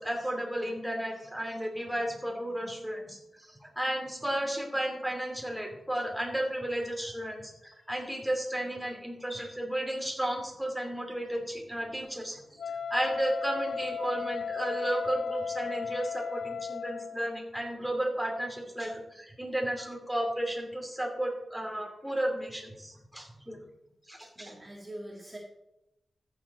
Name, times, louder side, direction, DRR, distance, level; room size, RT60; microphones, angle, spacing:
voice 1, 0.0-12.4 12.9-23.6 24.1-24.5, right 1 dB, ahead, 0 dB, 2.8 m, -33 dB
Wind instrument woodwind instrument, 12.6-17.3, left 6 dB, 75° left, 0.4 m, -35 dB
voice 2, 24.4-25.4, right 1 dB, 25° right, -2 dB, 1.9 m, -44 dB
14.5 x 7.3 x 4.2 m, 0.88 s
wide cardioid pair, 95°, 0 cm